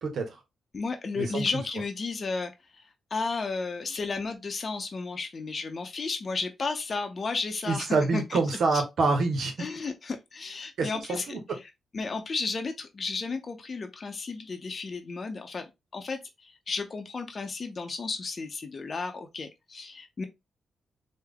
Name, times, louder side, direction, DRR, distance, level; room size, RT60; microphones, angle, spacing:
voice 1, 0.0-0.4 1.2-1.4 7.7-9.5 10.8-11.4, right 3 dB, 70° right, 0.8 m, -26 dB
voice 2, 0.7-2.8 3.1-7.9 8.1-8.4 8.7-8.8 9.6-11.6 11.9-15.7 15.9-20.2, left 4 dB, 45° left, 0.6 m, -33 dB
3.4 x 2.2 x 3.4 m
cardioid pair, 65°, 0 cm